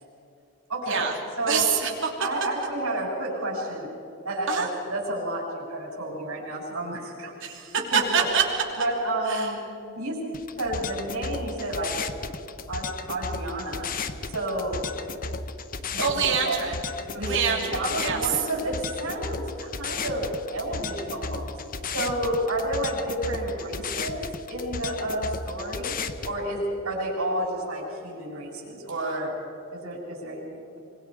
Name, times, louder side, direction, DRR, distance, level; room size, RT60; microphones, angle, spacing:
voice 1, 0.7-1.1 1.4-1.7 2.2-3.9 4.2-7.3 7.9-8.0 8.8-9.6 9.9-10.2 10.6-12.0 12.3-12.4 12.7-13.9 14.3-14.8 15.9-16.6 17.1-21.6 21.9-26.0 26.2-29.4 29.7-30.8, right 1 dB, 80° right, -2 dB, 6.9 m, -30 dB
voice 2, 1.5-2.1 4.5-4.7 7.4-8.4 9.3-9.5 16.0-16.7 17.2-18.3, right 6 dB, 60° right, 0 dB, 3.2 m, -25 dB
sound 1, 10.3-26.3, left 4 dB, 40° left, 0.8 m, -34 dB
25.0 x 23.5 x 5.0 m, 2.8 s
head